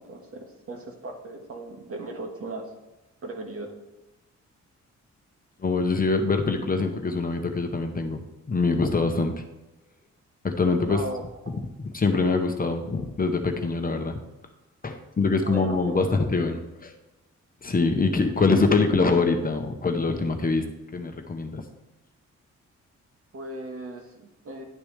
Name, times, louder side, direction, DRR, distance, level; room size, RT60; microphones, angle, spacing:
voice 1, 0.0-2.7 3.2-3.7 10.9-11.3 15.4-16.2 18.4-18.6 23.3-24.6, right 2 dB, 50° right, 2 dB, 1.7 m, -37 dB
voice 2, 5.6-9.4 10.4-11.0 11.5-11.6 11.9-14.2 14.8-16.9 17.6-20.7 20.9-21.6, left 3 dB, 30° left, 5 dB, 0.9 m, -24 dB
10.5 x 6.8 x 3.4 m, 1.0 s
cardioid pair, 115°, 29 cm